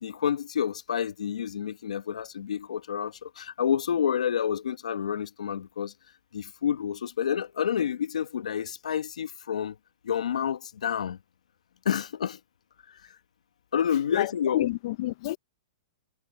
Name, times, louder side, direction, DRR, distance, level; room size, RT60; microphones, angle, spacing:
voice 1, 0.0-5.9 6.3-9.7 10.0-11.2 11.8-12.4 13.7-14.7, left 8 dB, 80° left, 1.2 m, -29 dB
voice 2, 14.1-15.4, left 16 dB, 55° left, 0.9 m, -29 dB
hypercardioid pair, 125°, 4 cm